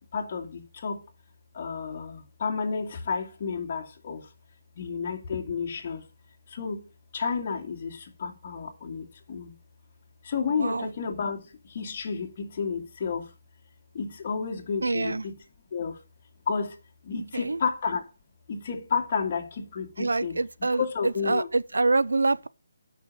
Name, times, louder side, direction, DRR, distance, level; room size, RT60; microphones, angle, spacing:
voice 1, 0.1-1.0 1.5-4.3 4.8-6.0 6.5-6.8 7.1-9.5 10.2-11.4 11.7-13.3 13.9-15.4 15.7-16.0 16.5-16.7 17.0-18.1 18.5-20.4 20.8-21.5, left 5 dB, 40° left, 2.3 m, -31 dB
voice 2, 14.8-15.2 17.3-17.6 20.0-22.5, right 3 dB, 85° right, 0.7 m, -26 dB
9.4 x 6.0 x 7.5 m
figure-of-eight pair, 155°, 0 cm